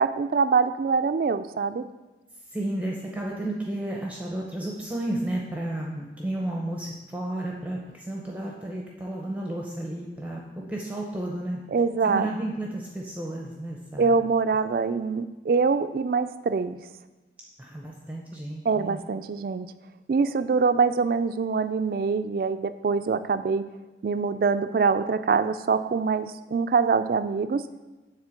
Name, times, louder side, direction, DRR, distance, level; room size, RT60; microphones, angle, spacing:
voice 1, 0.0-1.9 11.7-12.3 14.0-16.8 18.7-19.7 20.1-23.7 24.0-27.7, right 5 dB, 55° right, 12 dB, 0.3 m, -24 dB
voice 2, 2.5-10.4 10.7-11.6 12.0-14.2 17.6-19.0, right 1 dB, 10° right, -2 dB, 0.6 m, -32 dB
7.3 x 3.7 x 6.3 m, 1.2 s
head